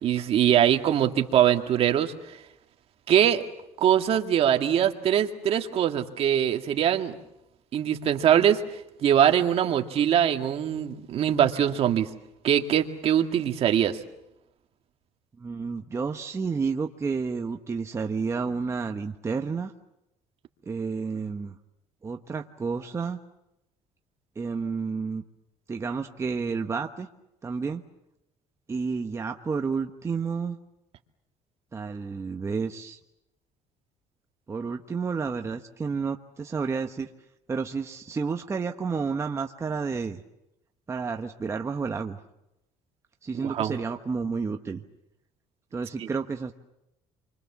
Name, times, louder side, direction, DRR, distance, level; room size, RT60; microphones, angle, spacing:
voice 1, 0.0-2.1 3.1-3.4 3.8-7.1 7.7-8.6 9.0-12.1 12.4-14.0 43.4-43.7, right 10 dB, 55° right, 5 dB, 2.0 m, -22 dB
voice 2, 15.4-19.7 20.7-21.5 22.0-23.2 24.4-25.2 25.7-27.1 27.4-27.8 28.7-30.6 31.7-33.0 34.5-37.1 37.5-40.2 40.9-42.2 43.2-44.8 45.7-46.5, right 5 dB, 25° right, 4 dB, 1.1 m, -30 dB
29.0 x 24.5 x 7.3 m, 0.88 s
cardioid pair, 130°, 12 cm